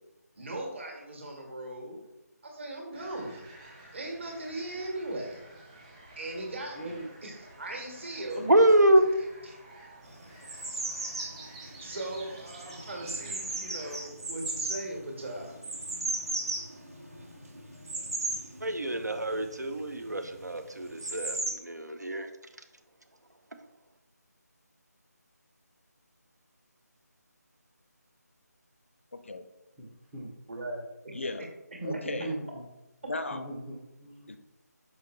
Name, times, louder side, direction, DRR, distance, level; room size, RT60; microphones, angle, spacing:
voice 1, 0.4-2.0 2.4-3.4 3.9-5.4 6.2-6.9 7.2-8.4 11.8-15.6 30.5-30.8 31.0-31.2 32.2-32.3, right 1 dB, 45° right, 0 dB, 1.8 m, -38 dB
sound 1, 2.9-14.1, right 2 dB, 20° right, 1.2 m, -51 dB
voice 2, 6.7-7.1 8.4-8.6 29.8-30.3 31.8-32.7 33.3-34.3, right 2 dB, ahead, -10 dB, 0.5 m, -39 dB
voice 3, 8.5-9.0 18.6-22.3, right 1 dB, 75° right, 8 dB, 0.6 m, -25 dB
sound 2, 10.1-21.5, right 2 dB, 60° right, 1.6 m, -37 dB
voice 4, 29.1-29.4 31.1-31.5 31.8-32.3 33.1-33.5 34.3-34.4, left 2 dB, 45° left, 9 dB, 0.5 m, -35 dB
6.3 x 5.0 x 3.1 m, 0.95 s
figure-of-eight pair, 160°, 9 cm